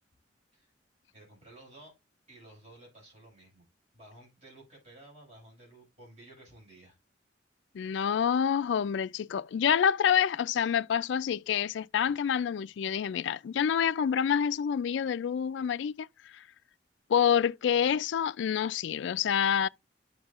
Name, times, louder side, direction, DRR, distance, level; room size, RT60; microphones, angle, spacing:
voice 1, 1.1-1.9 2.3-3.6 3.9-7.0, right 1 dB, 35° right, 5.3 m, -54 dB
voice 2, 7.7-16.1 17.1-19.7, left 8 dB, 70° left, 0.3 m, -27 dB
11.0 x 6.1 x 2.4 m
head